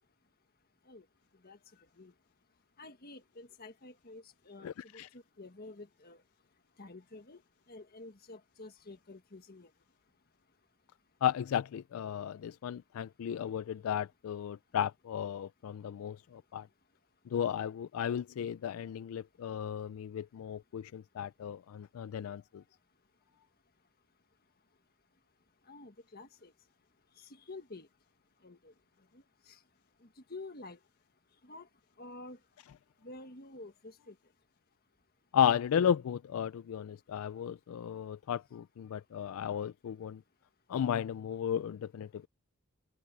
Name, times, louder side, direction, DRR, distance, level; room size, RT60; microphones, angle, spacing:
voice 1, 2.8-6.2 6.8-7.4 7.7-9.7 25.7-26.5 27.2-27.9 28.4-28.7 29.1-29.6 30.0-30.8 31.4-31.7 32.0-32.4 33.0-34.2, left 2 dB, 45° left, 1.7 m, -49 dB
voice 2, 4.6-5.1 11.2-16.7 17.3-22.6 35.3-40.2 40.7-42.3, left 9 dB, 75° left, 0.3 m, -34 dB
head